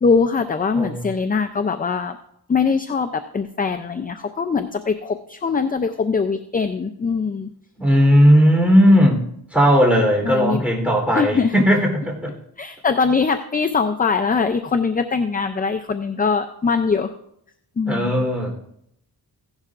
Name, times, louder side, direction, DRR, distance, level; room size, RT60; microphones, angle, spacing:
voice 1, 0.0-2.2 2.5-7.5 10.3-10.6 11.1-11.5 12.6-17.1 17.8-18.3, left 5 dB, 20° left, 9 dB, 0.4 m, -22 dB
voice 2, 7.8-9.2 9.5-12.3 17.9-18.5, equal, 5° right, -1 dB, 3.4 m, -16 dB
16.0 x 11.5 x 2.5 m, 0.75 s
wide cardioid pair, 120°, 41 cm